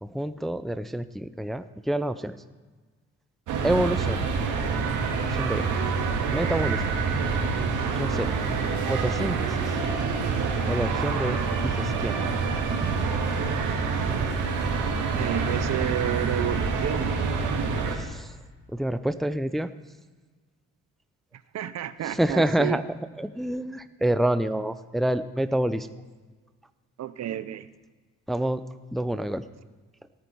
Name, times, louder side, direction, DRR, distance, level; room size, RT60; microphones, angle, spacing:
voice 1, 0.0-2.3 3.6-4.2 5.4-5.6 6.3-6.8 7.9-8.3 8.9-9.5 10.7-12.2 17.9-18.3 18.7-19.7 22.0-22.8 23.2-26.0 28.3-28.6 28.9-29.4, right 1 dB, ahead, 12 dB, 0.5 m, -27 dB
sound 1, 3.5-18.0, right 5 dB, 85° right, 2.2 m, -26 dB
voice 2, 15.2-17.1 21.5-22.8 27.0-27.7, right 11 dB, 60° right, 14 dB, 0.8 m, -31 dB
17.5 x 9.5 x 4.6 m, 1.4 s
cardioid pair, 90°, 30 cm